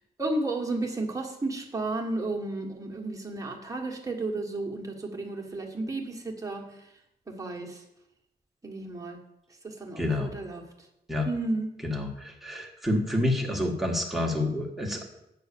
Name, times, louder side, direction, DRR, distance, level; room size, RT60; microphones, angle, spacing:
voice 1, 0.2-6.8 7.3-7.8 8.6-9.2 9.6-10.6 11.2-11.8, right 2 dB, 20° right, 1 dB, 1.4 m, -33 dB
voice 2, 10.0-10.3 11.1-11.3 11.8-15.0, left 1 dB, ahead, 0 dB, 1.4 m, -28 dB
8.3 x 6.2 x 6.8 m, 0.83 s
wide cardioid pair, 160°, 18 cm